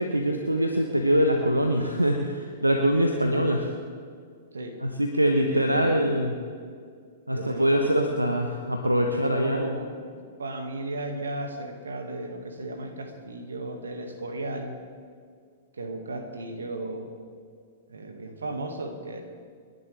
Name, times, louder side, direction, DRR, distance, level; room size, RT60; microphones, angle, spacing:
voice 1, 0.0-3.7 4.8-6.4 7.3-9.7, equal, 85° right, 4 dB, 1.1 m, -23 dB
voice 2, 5.5-6.2 7.3-8.3 9.1-14.7 15.7-17.1 17.9-19.2, right 2 dB, 70° right, 4 dB, 2.0 m, -35 dB
29.5 x 11.0 x 3.5 m, 2.1 s
figure-of-eight pair, 105°, 0 cm